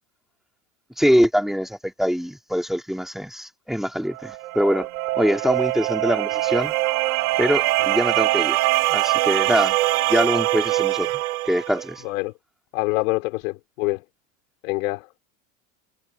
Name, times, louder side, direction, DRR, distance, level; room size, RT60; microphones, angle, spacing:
voice 1, 1.0-4.9 5.2-6.7 7.4-8.6 8.9-9.8 10.1-11.1 11.4-12.0, equal, ahead, 3.2 m, -23 dB
sound 1, 4.1-11.8, right 18 dB, 85° right, 4.8 m, -23 dB
voice 2, 12.7-14.0 14.6-15.0, left 24 dB, 75° left, 3.2 m, -25 dB
supercardioid pair, 125°, 41 cm